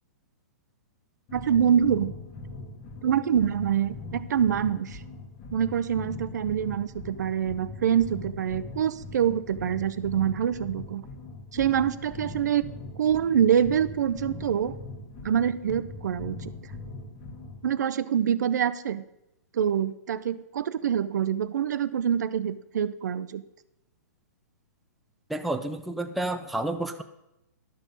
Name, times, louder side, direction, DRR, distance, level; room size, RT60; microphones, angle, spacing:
sound 1, 1.3-17.7, left 3 dB, 25° left, 1.4 m, -41 dB
voice 1, 1.3-2.1 3.0-5.0 5.5-11.0 11.5-12.6 13.0-14.8 15.2-16.5 17.6-19.0 19.5-23.4, right 9 dB, 70° right, 15 dB, 0.6 m, -25 dB
voice 2, 25.3-27.0, right 2 dB, ahead, 7 dB, 0.3 m, -30 dB
11.5 x 6.2 x 5.4 m, 0.90 s
hypercardioid pair, 155°, 10 cm